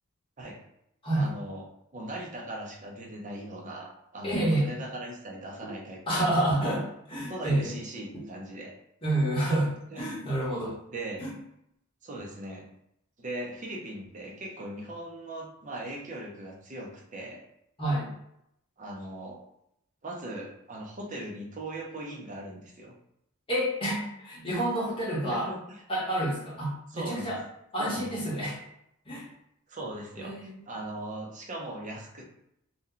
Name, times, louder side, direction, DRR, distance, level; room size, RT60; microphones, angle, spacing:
voice 1, 1.2-1.6 1.9-6.8 7.1-8.7 9.9-10.1 10.9-11.2 12.0-12.7 13.2-17.4 18.8-19.4 20.0-22.9 25.2-25.8 26.9-27.4 27.8-28.2 29.7-32.2, right 1 dB, 35° right, 0 dB, 0.5 m, -39 dB
voice 2, 4.2-4.7 6.1-7.8 9.0-10.7 11.2-11.3 17.8-18.1 23.5-25.5 25.9-27.4 27.7-28.6 29.0-29.3 30.2-30.6, right 1 dB, 25° left, -5 dB, 0.9 m, -28 dB
2.7 x 2.1 x 3.7 m, 0.79 s
head